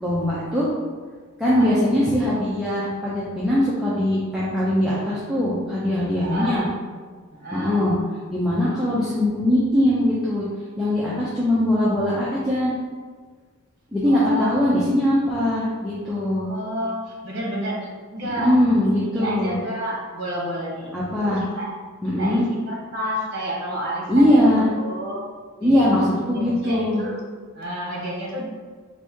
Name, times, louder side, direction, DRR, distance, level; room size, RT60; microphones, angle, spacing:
voice 1, 0.0-0.7 1.4-6.7 7.5-8.0 8.3-10.5 10.8-12.7 13.9-16.5 18.2-19.6 20.9-21.4 22.0-22.4 24.1-24.7 25.6-27.1, left 1 dB, ahead, -9 dB, 0.5 m, -21 dB
voice 2, 1.4-1.7 6.2-6.7 7.3-7.9 14.0-14.6 16.4-17.8 18.1-21.7 22.2-25.2 25.6-25.9 26.2-27.2 27.5-28.4, right 1 dB, 50° right, -3 dB, 1.1 m, -30 dB
4.3 x 2.6 x 3.5 m, 1.5 s
head